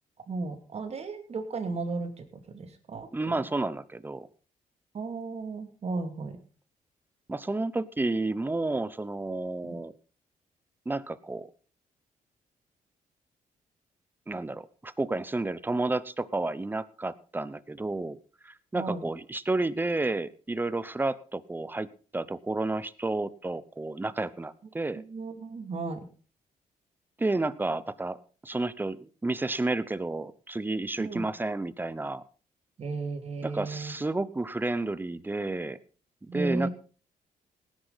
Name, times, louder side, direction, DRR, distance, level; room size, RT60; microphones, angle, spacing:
voice 1, 0.3-3.1 4.9-6.4 9.6-9.8 18.7-19.0 25.1-26.0 31.0-31.3 32.8-33.9 36.3-36.7, right 3 dB, 50° right, 7 dB, 2.6 m, -34 dB
voice 2, 3.1-4.3 7.3-9.9 10.9-11.5 14.3-18.2 18.4-25.0 27.2-28.2 28.4-32.2 33.4-35.8 36.3-36.7, right 2 dB, 15° right, 16 dB, 0.8 m, -31 dB
17.5 x 10.0 x 4.1 m, 0.38 s
cardioid pair, 95°, 14 cm